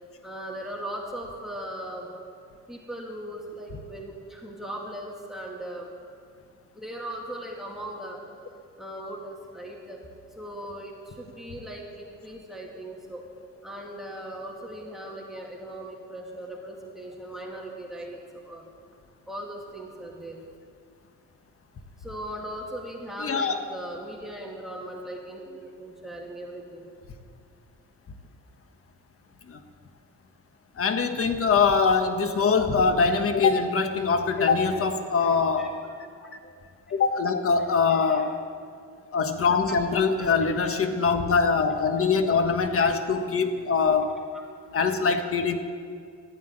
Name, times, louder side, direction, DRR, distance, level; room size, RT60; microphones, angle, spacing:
voice 1, 0.2-2.1 2.7-5.9 6.7-8.2 8.8-10.1 10.4-13.3 13.6-18.6 19.3-20.4 22.0-26.8 34.7-34.8 35.2-35.3 35.6-35.7 37.9-38.2 40.2-40.3 40.8-40.9, right 1 dB, ahead, -1 dB, 2.4 m, -38 dB
voice 2, 23.2-23.5 29.5-29.6 30.8-35.8 36.9-38.4 39.1-44.1 44.7-45.6, left 5 dB, 45° left, 8 dB, 1.4 m, -23 dB
14.0 x 9.6 x 9.0 m, 2.2 s
cardioid pair, 90°, 30 cm